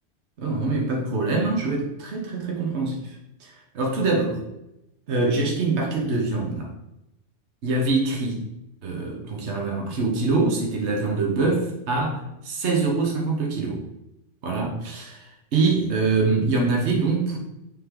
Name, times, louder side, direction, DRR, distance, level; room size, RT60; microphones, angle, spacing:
voice 1, 0.4-4.4 5.1-6.7 7.6-8.4 8.8-13.8 14.4-17.4, right 3 dB, 65° right, 0 dB, 1.4 m, -24 dB
7.4 x 3.7 x 3.7 m, 0.88 s
omnidirectional pair, 1.3 m